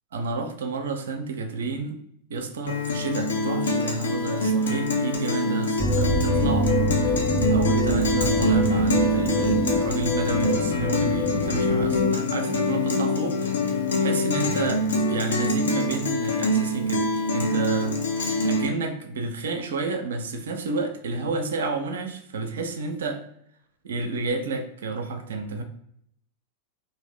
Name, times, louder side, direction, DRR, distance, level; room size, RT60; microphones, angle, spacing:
voice 1, 0.1-2.0 2.3-6.7 7.0-13.4 14.0-18.0 18.4-23.2 23.8-25.6, right 3 dB, 65° right, 6 dB, 0.4 m, -30 dB
Guitar, 2.7-18.7, left 1 dB, 70° left, 0.5 m, -25 dB
sound 1, 5.8-12.1, left 1 dB, 10° left, 0.6 m, -25 dB
2.6 x 2.1 x 3.4 m, 0.69 s
figure-of-eight pair, 90°, 0 cm